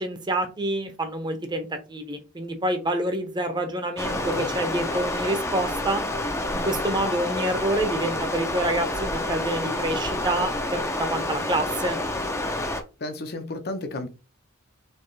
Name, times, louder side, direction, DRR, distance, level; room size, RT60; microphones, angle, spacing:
voice 1, 0.0-6.0 6.6-12.0, right 1 dB, 20° right, 0.8 m, -27 dB
voice 2, 4.0-4.5 13.0-14.1, left 2 dB, 50° left, 0.8 m, -33 dB
Stream, 4.0-12.8, left 1 dB, 15° left, 0.6 m, -28 dB
4.4 x 3.1 x 3.2 m
head